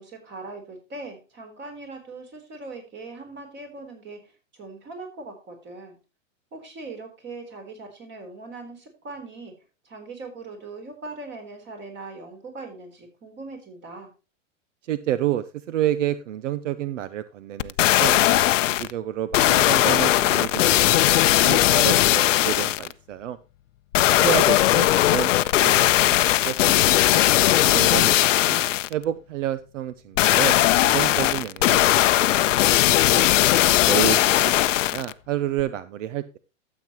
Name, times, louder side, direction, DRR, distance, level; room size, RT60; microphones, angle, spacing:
voice 1, 0.0-6.0 6.5-9.5 9.8-14.1 34.1-34.5, right 3 dB, 30° right, 5 dB, 3.7 m, -40 dB
voice 2, 14.9-17.7 18.0-21.1 21.4-23.4 24.1-26.6 26.8-27.2 27.6-28.6 28.9-33.3 33.8-36.4, right 11 dB, 75° right, 15 dB, 0.8 m, -30 dB
sound 1, 17.6-18.9 19.3-22.9 23.9-28.9 30.2-35.1 35.6-35.7, left 14 dB, 75° left, 0.6 m, -19 dB
13.0 x 7.8 x 3.0 m, 0.30 s
hypercardioid pair, 125°, 38 cm